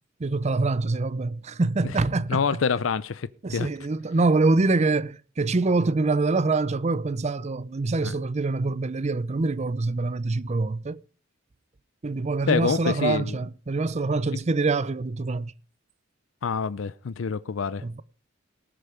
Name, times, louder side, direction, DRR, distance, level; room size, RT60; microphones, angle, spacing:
voice 1, 0.2-2.6 3.4-11.0 12.0-15.5 17.8-18.0, right 3 dB, 35° right, 0.5 m, -25 dB
voice 2, 2.3-3.7 8.0-8.1 12.5-13.4 16.4-17.8, left 5 dB, 80° left, 0.5 m, -26 dB
18.5 x 6.6 x 5.0 m
head